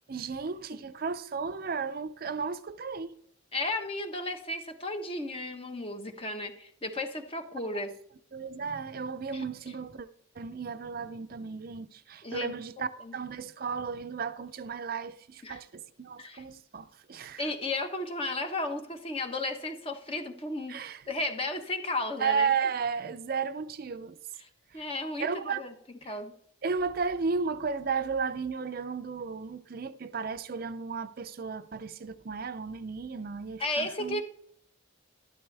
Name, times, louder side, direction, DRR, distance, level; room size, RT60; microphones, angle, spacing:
voice 1, 0.1-3.2 8.3-10.1 10.4-17.5 20.7-21.0 22.2-24.2 24.7-24.8 25.2-25.6 26.0-26.1 26.6-34.2, right 5 dB, 50° right, 0.5 m, -34 dB
voice 2, 3.5-7.9 9.3-9.4 12.2-12.5 13.0-13.1 15.4-15.6 16.2-16.4 17.4-20.7 21.1-22.5 24.7-25.7 26.0-26.3 33.6-34.2, left 2 dB, 30° left, 1.2 m, -34 dB
12.5 x 12.0 x 3.4 m
head